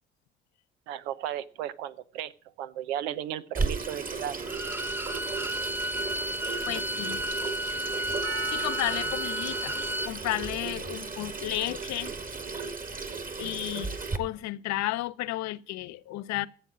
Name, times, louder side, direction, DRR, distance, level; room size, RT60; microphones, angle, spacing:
voice 1, 0.9-2.3 2.6-4.4, right 11 dB, 75° right, 0.8 m, -35 dB
Water tap faucet / Sink (filling or washing), 3.5-14.2, right 4 dB, 25° right, 1.9 m, -35 dB
Bowed string instrument, 4.4-10.1, equal, 5° right, 0.7 m, -32 dB
voice 2, 6.7-7.2 8.5-9.7 10.1-12.1 13.4-16.5, left 16 dB, 60° left, 0.8 m, -33 dB
Percussion, 8.2-13.2, right 5 dB, 55° right, 3.7 m, -43 dB
14.5 x 8.1 x 7.3 m
hypercardioid pair, 50°, 31 cm